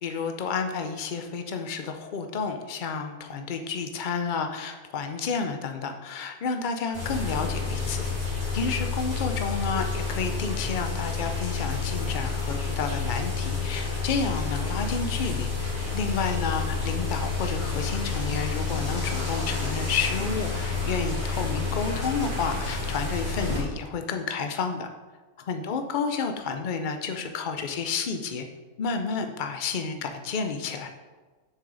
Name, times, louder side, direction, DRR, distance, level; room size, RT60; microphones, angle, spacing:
voice 1, 0.0-15.5 15.9-24.9 25.5-28.5 28.8-30.9, left 5 dB, 45° left, 5 dB, 0.7 m, -31 dB
sound 1, 6.9-23.6, left 4 dB, 70° left, 3.0 m, -29 dB
7.3 x 6.4 x 4.0 m, 1.3 s
omnidirectional pair, 1.5 m